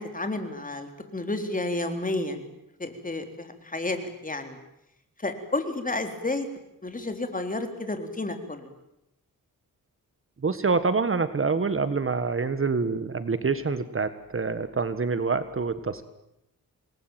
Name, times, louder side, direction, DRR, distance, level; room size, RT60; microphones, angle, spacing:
voice 1, 0.0-2.5 2.8-4.6 5.2-6.5 6.8-8.7, left 2 dB, 25° left, 7 dB, 3.9 m, -31 dB
voice 2, 10.4-16.0, right 4 dB, 35° right, 12 dB, 1.6 m, -26 dB
27.5 x 20.5 x 9.2 m, 0.83 s
wide cardioid pair, 105°, 35 cm